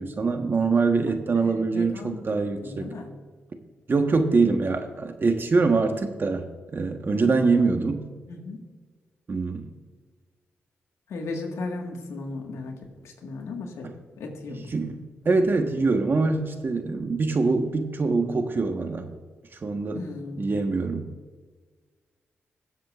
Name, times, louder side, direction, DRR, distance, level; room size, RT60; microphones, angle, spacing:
voice 1, 0.0-2.9 3.9-8.0 9.3-9.7 14.5-15.0 15.2-19.1 19.6-20.0 20.4-21.1, right 4 dB, 45° right, 6 dB, 1.3 m, -24 dB
voice 2, 1.3-3.1 7.1-7.4 8.3-8.6 11.1-12.8 13.0-14.7 19.9-20.5, left 3 dB, 85° left, 2 dB, 1.7 m, -36 dB
20.5 x 7.4 x 2.5 m, 1.4 s
cardioid pair, 60°, 5 cm